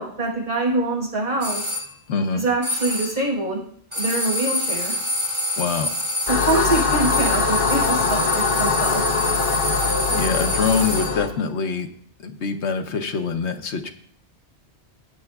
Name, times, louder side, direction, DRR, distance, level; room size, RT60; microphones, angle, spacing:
voice 1, 0.0-1.7 2.3-3.6 3.9-4.9 6.3-9.0, right 2 dB, 55° right, -5 dB, 4.9 m, -24 dB
sound 1, 1.4-1.9 2.6-3.3 3.9-11.3, left 1 dB, 25° right, 2.3 m, -26 dB
voice 2, 2.1-2.4 5.6-5.9 10.1-11.9 12.2-13.9, left 5 dB, 85° left, 6 dB, 1.2 m, -24 dB
sound 2, 6.3-11.3, left 4 dB, 55° left, 1.1 m, -23 dB
17.5 x 8.8 x 2.4 m, 0.63 s
omnidirectional pair, 1.1 m